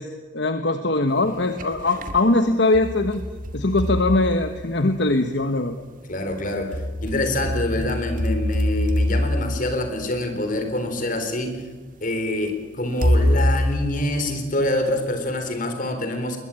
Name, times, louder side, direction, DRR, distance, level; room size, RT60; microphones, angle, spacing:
voice 1, 0.0-3.2 3.5-5.8, left 2 dB, 65° left, 8 dB, 1.2 m, -21 dB
sound 1, 1.2-2.2 2.7-5.1 6.3-10.7 11.5-11.6 13.0-14.9, left 1 dB, 45° right, 1.9 m, -25 dB
voice 2, 6.1-11.6 12.0-16.4, left 1 dB, 45° left, 7 dB, 3.7 m, -26 dB
21.5 x 21.0 x 9.0 m, 1.3 s
head